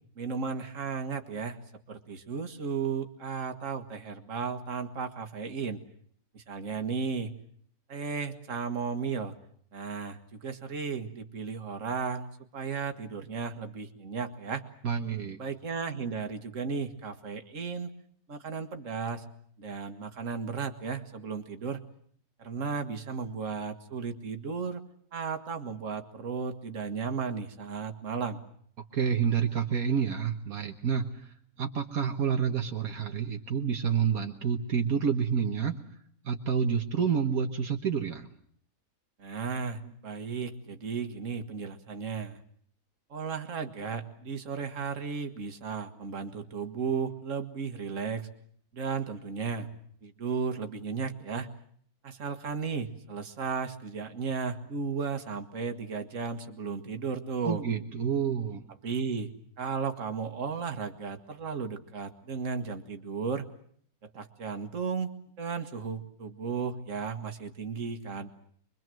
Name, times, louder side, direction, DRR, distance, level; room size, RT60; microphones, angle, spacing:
voice 1, 0.2-1.6 1.9-5.8 6.3-7.3 7.9-9.4 9.7-14.6 15.4-17.9 18.3-19.2 19.6-21.8 22.4-24.8 25.1-28.4 39.2-42.4 43.1-48.3 48.7-49.7 50.0-51.5 52.0-57.6 58.8-59.3 59.6-63.5 64.1-68.3, right 5 dB, 60° right, 7 dB, 2.0 m, -34 dB
voice 2, 14.8-15.4 28.9-31.3 31.6-35.8 36.2-38.3 57.4-58.6, right 7 dB, 75° right, 3 dB, 1.8 m, -28 dB
25.0 x 23.0 x 7.7 m, 0.63 s
omnidirectional pair, 1.5 m